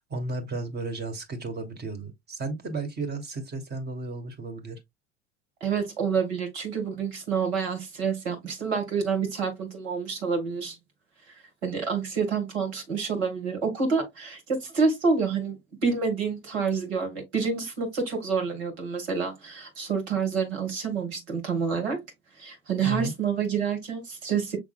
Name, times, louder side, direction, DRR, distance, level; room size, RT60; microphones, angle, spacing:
voice 1, 0.1-4.8 22.8-23.1, right 3 dB, 30° right, 1.6 m, -33 dB
voice 2, 5.6-10.8 11.6-22.0 22.4-24.6, right 5 dB, 70° right, 2.2 m, -28 dB
6.3 x 3.5 x 2.4 m
figure-of-eight pair, 65°, 34 cm